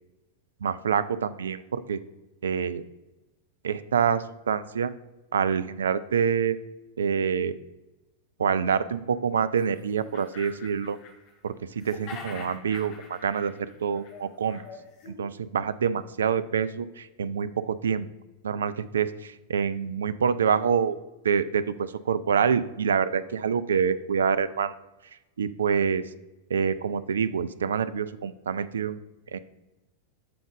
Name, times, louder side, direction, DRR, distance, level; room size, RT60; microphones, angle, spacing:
voice 1, 0.6-2.0 2.4-2.8 3.6-4.9 5.3-6.6 7.0-7.6 8.4-11.0 11.4-14.6 15.1-18.1 18.4-24.7 25.4-26.0 26.5-29.0 29.3-29.4, right 7 dB, 65° right, 15 dB, 0.3 m, -26 dB
sound 1, 9.6-9.7 10.0-11.5 11.8-15.2, left 4 dB, 40° left, 1.3 m, -44 dB
7.6 x 3.8 x 5.2 m, 1.0 s
figure-of-eight pair, 90°, 0 cm